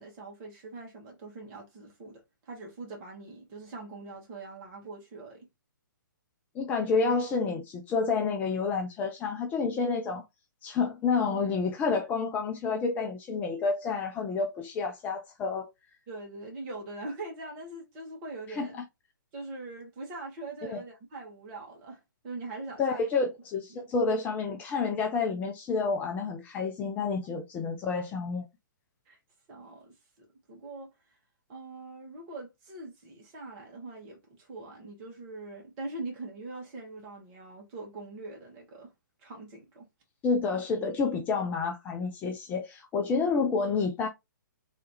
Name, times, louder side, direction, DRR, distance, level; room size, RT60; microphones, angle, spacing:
voice 1, 0.0-5.5 16.1-18.8 19.3-23.1 23.7-23.8 29.1-29.2 29.5-30.9 31.5-38.9 39.2-39.9, right 2 dB, 30° right, 1.5 m, -42 dB
voice 2, 6.6-10.2 10.6-15.7 18.5-18.7 20.6-20.8 22.8-28.4 40.2-44.1, left 4 dB, 15° left, 0.4 m, -29 dB
3.3 x 2.8 x 3.0 m
figure-of-eight pair, 125°, 11 cm